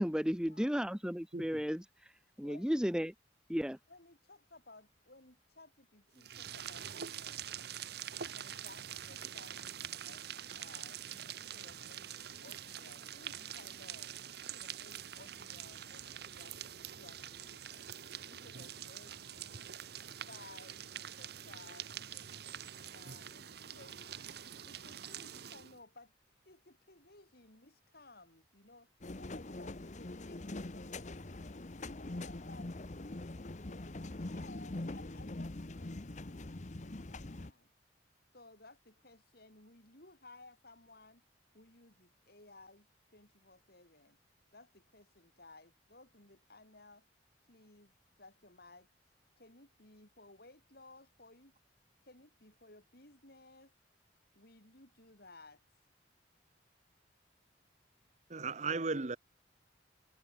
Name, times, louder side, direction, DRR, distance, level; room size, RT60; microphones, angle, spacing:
voice 1, 0.0-2.1 2.4-3.1 3.5-3.8, equal, 5° right, 1.3 m, -34 dB
voice 2, 2.4-2.9 3.9-7.5 8.3-14.2 14.5-16.6 16.8-17.6 18.2-19.7 20.1-24.1 24.6-26.1 26.4-28.9 29.2-31.6 32.0-32.8 33.6-37.7 38.3-41.2 41.5-44.2 44.5-47.1 47.4-47.9 48.2-48.9 49.4-51.5 52.0-53.7 54.3-55.6, left 2 dB, 55° left, 6.8 m, -59 dB
sound 1, 6.2-25.8, right 9 dB, 60° right, 1.1 m, -45 dB
sound 2, 29.0-37.5, left 2 dB, 40° left, 1.0 m, -43 dB
voice 3, 58.3-59.2, right 4 dB, 40° right, 1.0 m, -35 dB
head